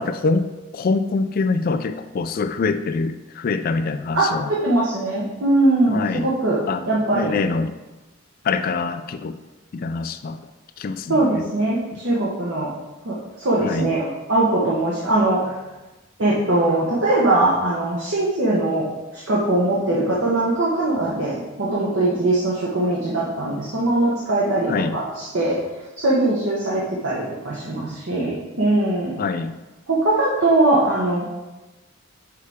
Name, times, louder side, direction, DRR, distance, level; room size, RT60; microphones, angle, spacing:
voice 1, 0.0-4.5 5.9-6.3 6.7-7.8 8.4-9.4 9.7-10.4 10.8-11.5 11.9-12.0 13.6-13.9 24.7-25.0 29.2-29.6, left 4 dB, 45° left, 10 dB, 0.3 m, -25 dB
voice 2, 4.1-6.6 6.9-7.4 11.1-12.7 13.0-15.5 16.2-25.6 26.0-29.1 29.9-31.3, right 2 dB, 60° right, -6 dB, 1.0 m, -21 dB
6.5 x 4.7 x 3.6 m, 1.1 s
head